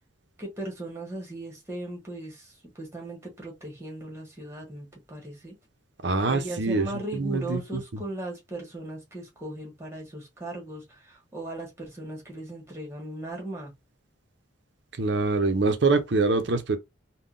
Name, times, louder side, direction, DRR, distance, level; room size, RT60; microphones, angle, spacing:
voice 1, 0.4-5.5 6.3-13.7, right 1 dB, 15° right, 1.3 m, -38 dB
voice 2, 6.0-7.8 15.0-16.8, right 3 dB, 60° right, 0.6 m, -25 dB
3.6 x 2.2 x 2.5 m
head